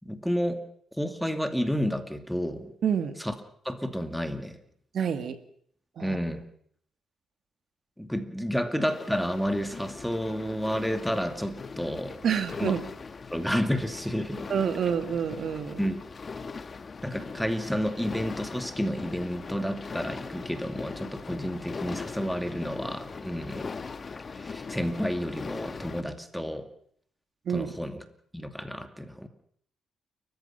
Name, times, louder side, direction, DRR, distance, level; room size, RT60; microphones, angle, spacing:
voice 1, 0.0-0.6 1.0-2.7 3.2-3.3 3.6-4.6 6.0-6.5 8.0-12.2 12.6-12.7 13.3-14.5 15.8-16.0 17.0-23.7 24.3-26.7 27.5-28.0 28.3-29.3, equal, ahead, 7 dB, 2.4 m, -30 dB
voice 2, 2.8-3.2 4.9-5.4 6.0-6.2 12.2-12.8 14.5-15.8 27.5-27.7, right 7 dB, 60° right, 9 dB, 2.3 m, -27 dB
sound 1, 8.8-26.0, left 4 dB, 35° left, 1.3 m, -40 dB
29.5 x 15.0 x 5.9 m, 0.64 s
cardioid pair, 90°, 0 cm